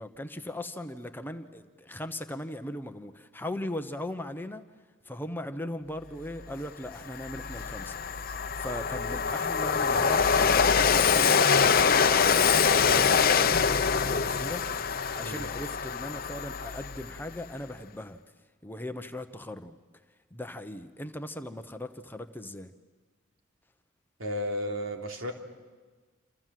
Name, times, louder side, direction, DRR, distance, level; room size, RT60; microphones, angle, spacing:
voice 1, 0.0-4.6 5.0-14.8 15.1-18.2 18.6-19.8 20.3-22.7, left 1 dB, 10° left, 8 dB, 1.0 m, -39 dB
Train, 6.4-6.5 6.9-17.3, left 6 dB, 45° left, 0.8 m, -24 dB
voice 2, 15.2-15.5 24.2-25.3, equal, 85° right, 2 dB, 3.4 m, -33 dB
28.0 x 27.5 x 7.7 m, 1.4 s
head